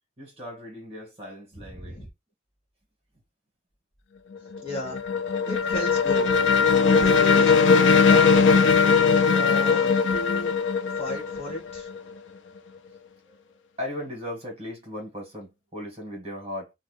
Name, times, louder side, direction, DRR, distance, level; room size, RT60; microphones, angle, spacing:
voice 1, 0.2-2.0 13.2-13.4 13.8-16.7, left 1 dB, 35° right, 1.5 m, -37 dB
voice 2, 1.5-2.1 4.6-5.0 5.4-6.3 7.0-8.9 9.3-10.6 11.0-11.9, left 1 dB, 30° left, 1.4 m, -34 dB
sound 1, 4.4-12.1, left 5 dB, 80° left, 0.5 m, -20 dB
2.7 x 2.3 x 3.5 m
head